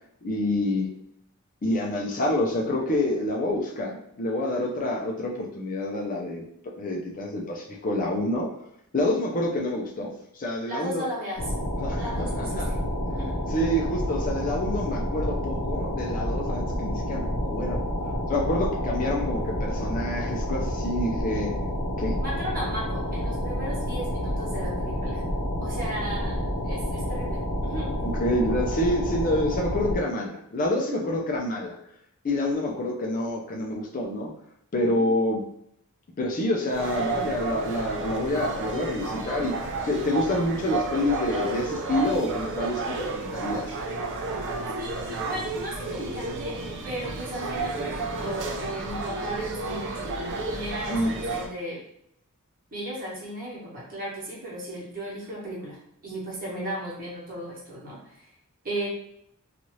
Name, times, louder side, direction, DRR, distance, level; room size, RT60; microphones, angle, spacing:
voice 1, 0.2-0.9 1.6-6.4 6.8-8.5 8.9-11.1 11.8-12.7 13.5-17.9 18.3-21.5 22.0-22.2 28.0-31.8 32.2-34.3 34.7-35.4 36.2-39.5 39.9-43.8 50.9-51.1, left 1 dB, 40° left, 0 dB, 0.4 m, -27 dB
voice 2, 10.7-11.4 12.0-12.8 13.2-13.3 22.2-25.2 25.6-26.3 26.7-27.9 30.9-31.2 34.9-35.1 44.8-46.5 46.8-51.8 52.7-58.2 58.6-58.9, right 1 dB, 40° right, -6 dB, 1.1 m, -35 dB
sound 1, 11.4-29.9, equal, 80° left, 0.7 m, -29 dB
sound 2, 36.7-51.5, right 3 dB, 55° right, 0.5 m, -32 dB
2.7 x 2.4 x 3.0 m, 0.73 s
head